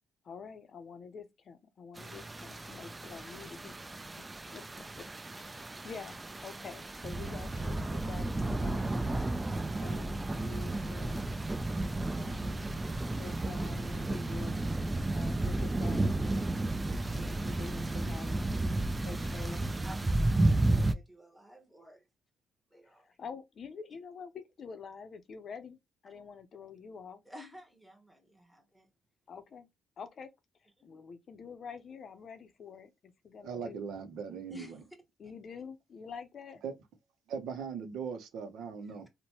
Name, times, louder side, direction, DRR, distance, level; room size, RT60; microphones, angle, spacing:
voice 1, 0.2-4.0 4.5-4.6 5.0-5.1 5.4-9.1 9.6-11.2 12.0-12.7 13.1-14.5 15.0-16.6 16.9-18.5 18.9-19.6 23.2-27.2 29.3-29.7 30.0-30.3 30.8-33.8 35.2-36.6, left 5 dB, 55° left, 0.5 m, -47 dB
sound 1, 2.0-20.9, right 2 dB, 20° right, 0.3 m, -32 dB
voice 2, 19.8-22.1 22.7-23.2 26.1-26.2 27.2-28.9 30.8-31.0 34.5-34.9 38.8-39.1, left 1 dB, ahead, 0.9 m, -53 dB
voice 3, 33.4-34.8 36.6-36.7 37.3-39.1, right 6 dB, 80° right, 0.6 m, -39 dB
3.0 x 2.1 x 2.8 m
cardioid pair, 90°, 0 cm